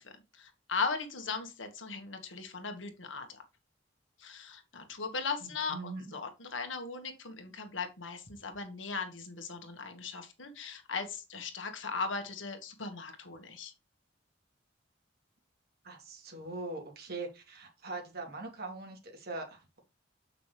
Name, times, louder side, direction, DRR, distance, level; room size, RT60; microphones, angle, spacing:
voice 1, 0.0-3.4 4.2-13.7, left 4 dB, 90° left, 1.6 m, -38 dB
voice 2, 5.4-6.1 15.8-19.8, right 3 dB, 55° right, 2.9 m, -42 dB
7.5 x 5.8 x 3.3 m
head